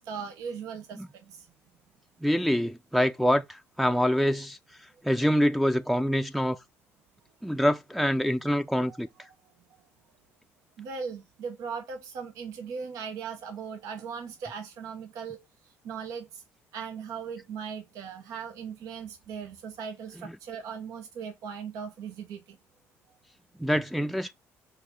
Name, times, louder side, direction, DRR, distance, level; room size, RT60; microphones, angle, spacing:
voice 1, 0.0-1.5 2.4-2.5 8.8-9.0 10.8-15.4 15.8-16.4 16.7-22.6, right 6 dB, 75° right, 1.0 m, -38 dB
voice 2, 2.2-4.6 5.0-6.6 7.4-9.1 20.2-20.3 23.6-24.3, equal, ahead, 0.5 m, -25 dB
6.7 x 2.7 x 5.3 m
supercardioid pair, 80°, 6 cm